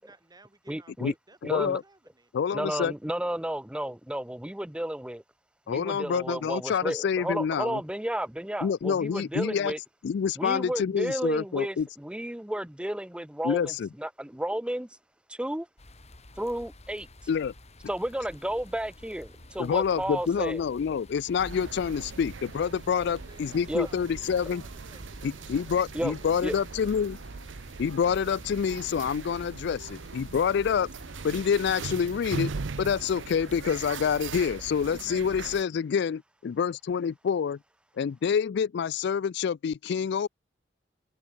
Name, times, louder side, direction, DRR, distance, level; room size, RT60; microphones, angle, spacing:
voice 1, 0.0-2.3 23.1-27.0, right 2 dB, 20° right, 3.0 m, -57 dB
voice 2, 0.7-1.1 1.4-1.8 2.5-5.2 5.7-9.8 10.4-15.0 15.3-15.7 16.3-17.3 17.9-20.6 23.7-23.9 25.9-26.1 26.4-26.5, right 1 dB, 5° right, 0.7 m, -32 dB
voice 3, 1.5-1.8 2.3-2.9 5.7-7.8 8.6-9.7 10.0-11.9 13.4-13.9 17.3-17.5 19.6-24.6 25.2-27.2 27.8-30.9 31.2-32.5 32.8-37.6 38.0-40.3, left 7 dB, 65° left, 0.4 m, -27 dB
sound 1, 15.8-34.9, left 1 dB, 35° left, 2.9 m, -51 dB
sound 2, 17.9-28.3, right 1 dB, 60° right, 6.9 m, -62 dB
sound 3, 21.4-35.6, right 4 dB, 85° right, 0.7 m, -40 dB
head